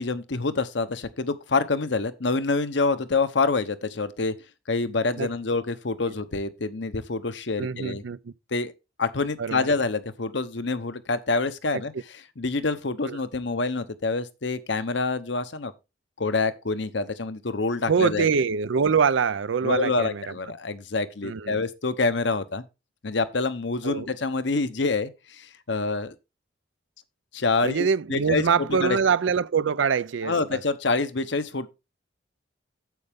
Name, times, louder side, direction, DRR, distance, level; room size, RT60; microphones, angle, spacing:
voice 1, 0.0-4.3 4.7-8.0 8.5-8.7 9.0-11.9 12.4-15.7 16.2-18.3 19.6-22.6 23.0-26.1 27.3-29.0 30.2-31.7, left 3 dB, 65° left, 0.9 m, -26 dB
voice 2, 7.6-8.3 9.4-9.7 11.7-11.8 13.1-13.2 17.9-20.3 21.2-21.6 23.8-24.1 27.6-30.6, right 6 dB, 75° right, 0.5 m, -24 dB
9.4 x 7.9 x 3.5 m
head